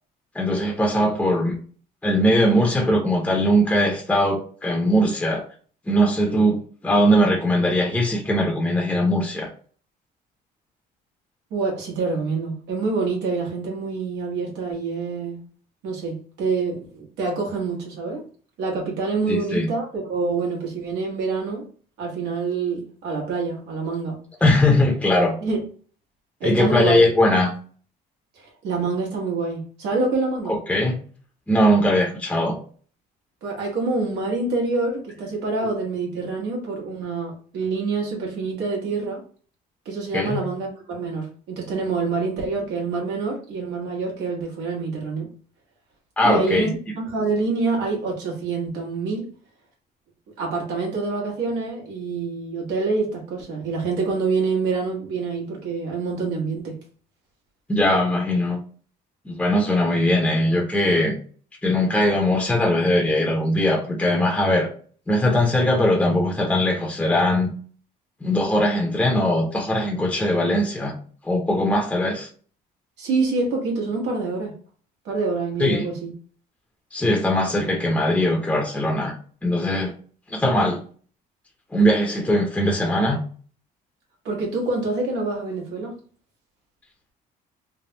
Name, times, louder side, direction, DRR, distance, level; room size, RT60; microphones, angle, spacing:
voice 1, 0.3-1.6 2.0-5.4 5.9-9.5 19.3-19.7 24.4-25.3 26.4-27.5 30.5-31.0 31.5-32.6 40.1-40.4 46.2-46.7 57.7-58.6 59.3-61.2 61.6-64.7 65.1-67.5 68.2-70.9 71.2-72.3 75.6-75.8 76.9-79.2 79.4-79.9 80.3-80.8 81.7-83.2, left 1 dB, 10° left, 0.7 m, -20 dB
voice 2, 11.5-15.4 15.8-18.2 18.6-21.6 22.0-24.2 25.4-25.6 26.4-27.0 28.4-30.5 33.4-39.2 39.8-45.3 46.2-49.3 50.4-56.8 73.0-74.5 75.0-76.1 84.2-85.9, right 4 dB, 90° right, 1.4 m, -26 dB
3.4 x 2.2 x 2.8 m
cardioid pair, 110°, 17 cm